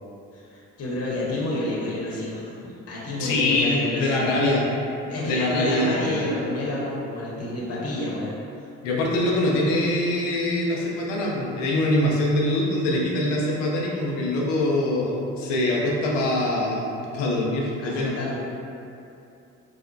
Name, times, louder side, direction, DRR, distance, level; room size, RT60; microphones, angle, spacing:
voice 1, 0.3-4.3 5.0-8.3 17.8-18.4, left 1 dB, 40° left, -5 dB, 0.8 m, -29 dB
voice 2, 3.2-4.6 5.2-6.2 8.8-18.1, left 1 dB, 85° left, -3 dB, 0.6 m, -24 dB
4.7 x 2.1 x 2.5 m, 2.7 s
hypercardioid pair, 45°, 37 cm